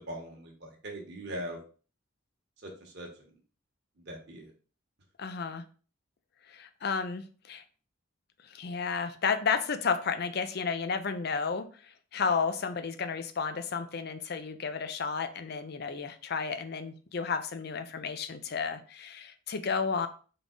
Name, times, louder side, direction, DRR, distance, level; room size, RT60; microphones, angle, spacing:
voice 1, 0.1-1.6 2.6-3.3 4.0-4.5, equal, 55° right, 0 dB, 1.1 m, -41 dB
voice 2, 5.2-5.6 6.5-7.6 8.4-20.1, left 5 dB, 50° left, 10 dB, 0.5 m, -32 dB
3.9 x 3.5 x 3.8 m, 0.39 s
head